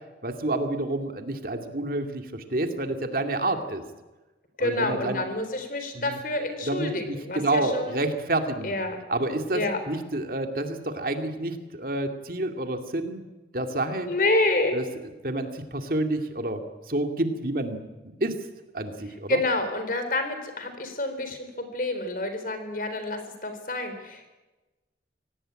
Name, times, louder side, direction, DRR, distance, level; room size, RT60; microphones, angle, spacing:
voice 1, 0.2-3.8 4.6-5.2 5.9-6.2 6.7-8.7 9.1-13.2 13.5-14.1 14.7-14.8 15.2-16.6 16.9-17.8 18.2-18.4 18.7-19.4, right 2 dB, 50° right, 6 dB, 2.4 m, -29 dB
voice 2, 4.6-8.0 8.6-9.0 9.5-9.8 14.0-14.8 19.3-24.3, left 2 dB, 50° left, 8 dB, 4.1 m, -28 dB
25.0 x 18.0 x 8.9 m, 1.1 s
head